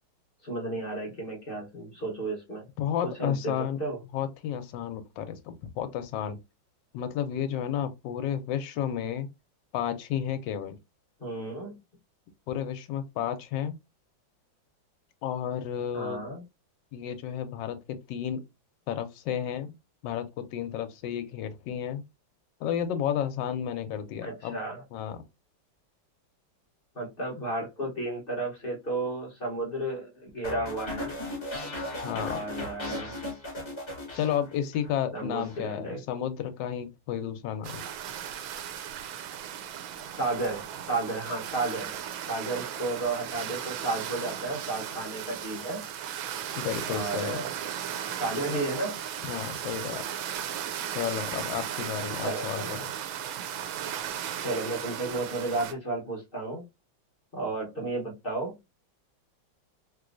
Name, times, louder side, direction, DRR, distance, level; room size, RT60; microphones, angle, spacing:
voice 1, 0.4-2.7 3.0-4.0 11.2-11.8 15.9-16.4 24.2-24.8 26.9-31.1 32.1-33.1 35.1-36.0 40.1-41.9 42.3-45.8 46.8-47.5 48.2-49.0 52.2-52.8 54.4-56.6 57.3-58.5, right 2 dB, 45° left, 0.8 m, -33 dB
voice 2, 2.8-3.8 4.1-6.4 6.9-9.3 9.7-10.8 12.5-13.7 15.2-16.2 16.9-18.4 18.9-19.7 20.0-22.0 22.6-24.6 24.9-25.2 32.0-32.5 34.1-37.8 46.5-47.4 49.3-50.1 50.9-52.8, left 9 dB, 75° left, 1.2 m, -32 dB
sound 1, 30.4-34.9 35.2-35.6, left 1 dB, 20° left, 1.0 m, -37 dB
sound 2, 37.6-55.7, right 9 dB, 90° right, 1.4 m, -36 dB
3.2 x 3.1 x 2.4 m
omnidirectional pair, 2.1 m